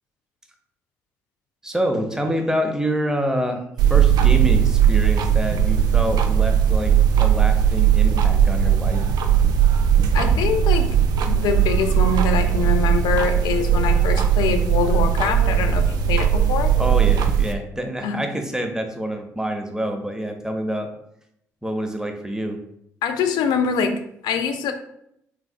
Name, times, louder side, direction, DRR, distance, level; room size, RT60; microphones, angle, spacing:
voice 1, 1.6-3.6 3.9-9.0 16.8-20.9 21.6-22.6, equal, 10° right, 4 dB, 0.6 m, -26 dB
sound 1, 3.8-17.5, right 8 dB, 60° right, 0.4 m, -18 dB
voice 2, 10.1-11.0 11.2-16.7 18.0-18.2 23.0-24.7, left 6 dB, 65° left, 6 dB, 0.4 m, -24 dB
3.3 x 3.3 x 2.2 m, 0.75 s
hypercardioid pair, 45°, 8 cm